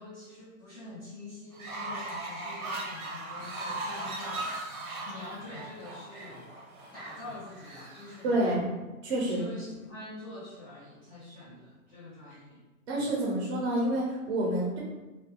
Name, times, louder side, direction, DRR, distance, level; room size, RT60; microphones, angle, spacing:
voice 1, 0.0-4.5 5.1-6.6 6.9-8.4 9.2-12.6, left 2 dB, 15° left, -10 dB, 0.4 m, -45 dB
Fowl, 1.5-8.5, right 2 dB, 85° right, 1.1 m, -39 dB
voice 2, 8.2-8.7 9.0-9.4 12.9-14.8, right 1 dB, 50° right, -4 dB, 0.8 m, -28 dB
2.5 x 2.2 x 3.4 m, 1.2 s
hypercardioid pair, 150°, 43 cm